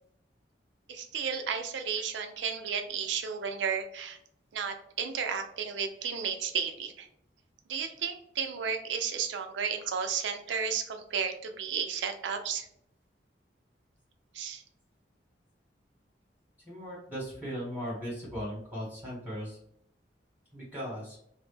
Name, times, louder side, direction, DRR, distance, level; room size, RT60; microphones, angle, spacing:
voice 1, 0.9-4.2 4.5-7.1 7.7-12.7 14.3-14.6, right 6 dB, 85° right, 6 dB, 0.4 m, -33 dB
voice 2, 16.7-19.6 20.5-21.2, equal, 10° right, -8 dB, 0.9 m, -38 dB
2.1 x 2.0 x 3.1 m, 0.72 s
head